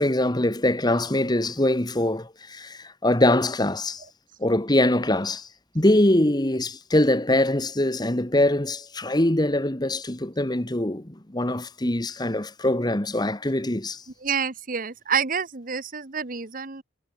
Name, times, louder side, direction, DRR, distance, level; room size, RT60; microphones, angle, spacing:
voice 1, 0.0-4.0 4.4-5.5 5.7-14.0, left 1 dB, 20° left, 1.4 m, -23 dB
voice 2, 14.2-16.8, right 6 dB, 45° right, 1.2 m, -28 dB
head